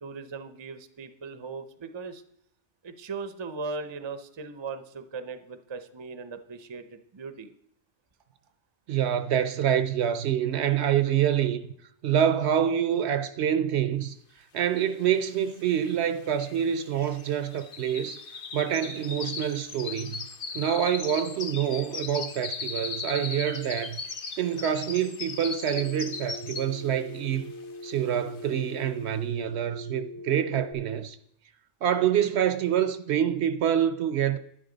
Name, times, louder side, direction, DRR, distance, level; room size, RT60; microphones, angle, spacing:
voice 1, 0.0-2.2 2.8-7.5, right 4 dB, 30° right, 0.5 m, -38 dB
voice 2, 8.9-11.7 12.0-14.1 14.5-18.2 18.5-20.3 20.5-24.0 24.4-27.5 27.8-31.2 31.8-34.4, right 9 dB, 70° right, 0.8 m, -26 dB
sound 1, 15.2-15.3 15.5-26.9 27.3-27.6 28.1-28.2, left 5 dB, 50° left, 0.9 m, -38 dB
Telephone, 25.7-30.7, left 2 dB, 85° left, 1.6 m, -42 dB
11.0 x 9.8 x 3.9 m
omnidirectional pair, 1.2 m